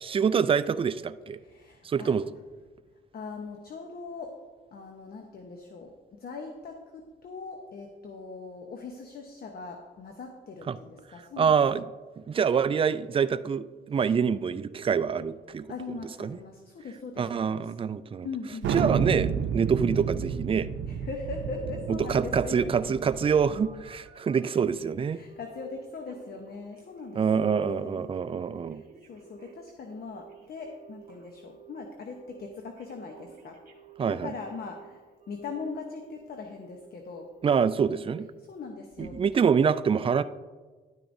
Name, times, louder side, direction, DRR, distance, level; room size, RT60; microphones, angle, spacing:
voice 1, 0.0-1.4 1.8-2.3 10.7-10.8 11.4-11.9 12.3-15.7 16.2-16.4 17.2-18.3 18.7-20.7 22.1-25.2 27.2-28.8 34.0-34.3 37.4-38.3 39.0-40.2, right 6 dB, 25° right, 13 dB, 0.4 m, -26 dB
voice 2, 1.4-2.1 3.1-4.4 4.7-11.6 13.9-14.1 15.7-17.7 18.2-18.9 20.9-22.9 24.4-24.6 25.1-28.1 28.4-33.6 34.0-37.4 38.5-39.6, left 4 dB, 50° left, 4 dB, 1.0 m, -41 dB
Thunder, 18.6-23.8, right 6 dB, 75° right, 0.7 m, -31 dB
Telephone, 21.4-24.7 25.3-25.7 25.9-27.3 27.6-28.0 28.3-31.7 32.1-32.5 32.8-34.8 35.2-36.1 36.4-36.8 37.2-37.6 37.9-38.3 38.7-38.8, right 4 dB, 45° right, 1.9 m, -52 dB
11.5 x 9.2 x 2.7 m, 1.4 s
cardioid pair, 90°, 20 cm